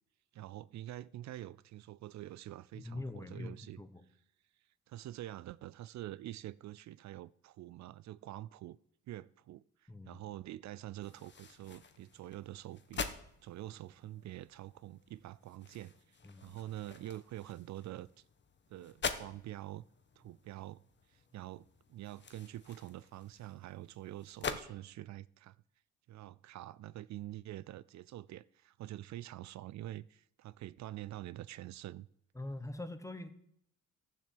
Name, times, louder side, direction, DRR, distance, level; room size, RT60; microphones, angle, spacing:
voice 1, 0.3-3.8 4.9-8.8 9.1-13.1 13.4-16.2 16.4-18.1 18.7-19.8 20.2-20.8 21.1-25.6 26.1-32.1, right 14 dB, 65° right, 0.5 m, -46 dB
voice 2, 2.7-4.0 9.9-10.2 16.2-16.5 32.3-33.3, left 2 dB, 10° left, 1.4 m, -43 dB
sound 1, 11.0-24.6, left 5 dB, 35° left, 1.3 m, -46 dB
12.0 x 7.5 x 7.8 m
cardioid pair, 90°, 30 cm